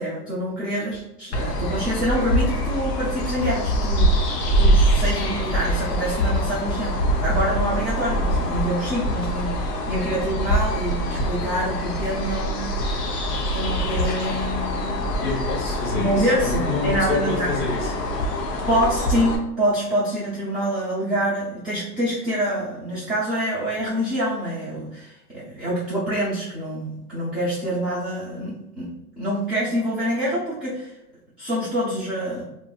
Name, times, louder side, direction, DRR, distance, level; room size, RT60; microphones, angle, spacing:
voice 1, 0.0-4.3 4.6-12.7 13.5-15.1 15.9-17.5 18.7-30.9 31.4-32.4, equal, ahead, -13 dB, 0.5 m, -26 dB
sound 1, 1.3-19.4, equal, 70° left, 0.8 m, -24 dB
voice 2, 15.2-17.9, left 4 dB, 40° left, -3 dB, 1.3 m, -28 dB
2.7 x 2.4 x 2.3 m, 0.87 s
hypercardioid pair, 120°, 49 cm